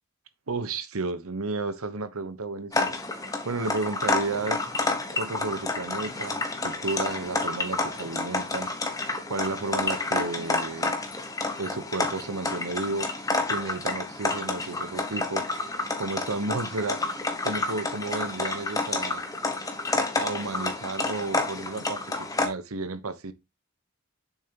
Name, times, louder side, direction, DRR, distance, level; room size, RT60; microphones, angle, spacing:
voice 1, 0.5-2.9 3.4-4.6 5.1-8.7 9.0-11.0 11.6-15.5 16.0-17.0 17.4-19.2 20.2-23.3, right 3 dB, 85° right, 1.0 m, -32 dB
sound 1, 2.7-22.5, left 2 dB, 15° left, 1.1 m, -29 dB
8.8 x 7.0 x 2.9 m
head